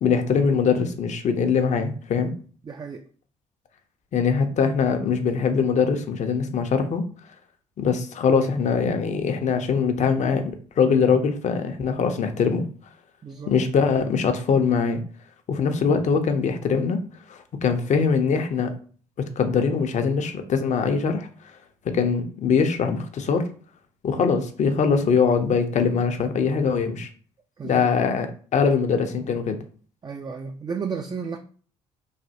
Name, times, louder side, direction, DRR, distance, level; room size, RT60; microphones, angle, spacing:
voice 1, 0.0-2.3 4.1-7.0 7.8-12.7 13.5-15.0 15.5-17.0 17.3-18.7 19.4-21.3 21.8-23.5 24.0-27.1 27.6-28.3 28.5-29.6, left 5 dB, 50° left, 0.6 m, -22 dB
voice 2, 2.6-3.1 13.2-13.6 27.6-27.9 30.0-31.4, right 5 dB, 25° right, 0.3 m, -33 dB
3.2 x 2.2 x 2.8 m
hypercardioid pair, 55°, 16 cm